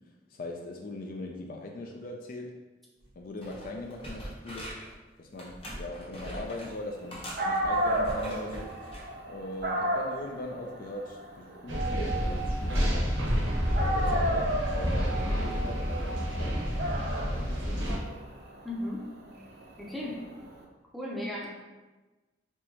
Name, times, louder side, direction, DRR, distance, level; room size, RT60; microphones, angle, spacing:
voice 1, 0.3-2.5 3.2-4.7 5.2-8.8 9.3-13.5 13.7-16.6 17.2-18.1, left 2 dB, 45° left, 2 dB, 0.3 m, -40 dB
sound 1, 3.0-3.1 3.4-4.9 5.4-6.7 7.1-9.1 9.6-9.8, equal, 30° left, 0.9 m, -42 dB
Dog, 7.1-7.2 7.4-13.4 13.7-20.5, equal, 55° right, 0.6 m, -33 dB
sound 2, 11.7-18.0, equal, 85° right, 1.1 m, -29 dB
voice 2, 18.6-19.0 19.8-20.2 20.9-21.5, left 1 dB, ahead, -4 dB, 0.6 m, -35 dB
4.5 x 3.2 x 2.8 m, 1.2 s
head